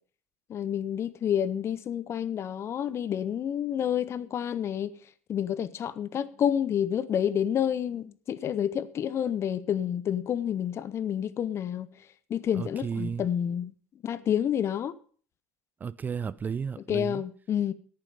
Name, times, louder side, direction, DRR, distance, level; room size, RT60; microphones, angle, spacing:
voice 1, 0.5-5.0 5.3-11.9 12.3-13.7 14.0-14.9 16.9-17.7, left 9 dB, 40° left, 0.9 m, -29 dB
voice 2, 12.5-13.3 15.8-17.2, right 6 dB, 25° right, 0.4 m, -33 dB
11.0 x 9.1 x 5.2 m
hypercardioid pair, 70°, 7 cm